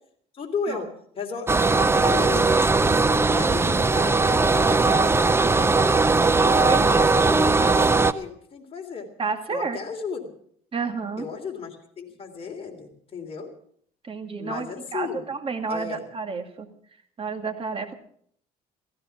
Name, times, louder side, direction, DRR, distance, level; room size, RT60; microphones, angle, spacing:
voice 1, 0.3-0.9 1.1-2.6 2.9-4.2 4.5-5.9 6.5-7.7 8.1-9.1 9.5-10.2 11.2-13.5 14.4-15.2 15.7-16.0, left 5 dB, 35° left, 1 dB, 3.2 m, -35 dB
sound 1, 1.5-8.1, right 3 dB, 15° right, 0.7 m, -19 dB
voice 2, 6.3-7.2 9.2-9.8 10.7-11.3 14.0-16.7 17.2-17.9, right 4 dB, 35° right, 6 dB, 2.2 m, -31 dB
15.5 x 15.5 x 5.9 m, 0.62 s
cardioid pair, 110°, 17 cm